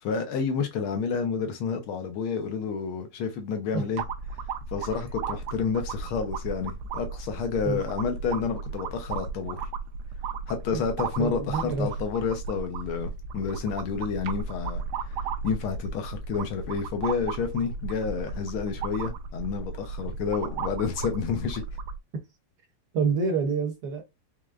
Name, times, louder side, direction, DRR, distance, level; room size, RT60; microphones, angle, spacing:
voice 1, 0.0-4.0 4.7-9.6 10.5-14.8 15.1-15.2 15.4-21.6, left 6 dB, 75° left, 1.8 m, -30 dB
sound 1, 4.0-22.0, right 5 dB, 90° right, 1.6 m, -35 dB
voice 2, 11.2-11.9 22.9-24.1, right 5 dB, 60° right, 1.2 m, -27 dB
4.9 x 3.2 x 2.4 m
omnidirectional pair, 2.4 m